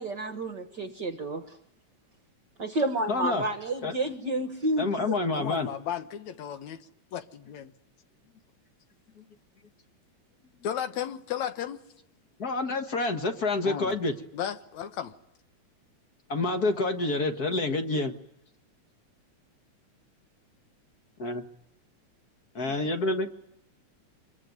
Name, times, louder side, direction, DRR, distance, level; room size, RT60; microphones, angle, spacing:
voice 1, 0.0-1.6 2.6-5.2, right 2 dB, 45° right, 1.5 m, -30 dB
voice 2, 3.1-3.4 3.8-3.9 4.8-5.7 9.2-9.3 12.4-14.2 16.3-18.1 21.2-21.4 22.5-23.3, left 2 dB, 40° left, 1.6 m, -28 dB
voice 3, 5.3-6.8 7.1-7.7 10.6-11.8 13.6-14.0 14.3-15.1, left 9 dB, 75° left, 2.5 m, -34 dB
26.5 x 22.5 x 9.4 m
omnidirectional pair, 3.3 m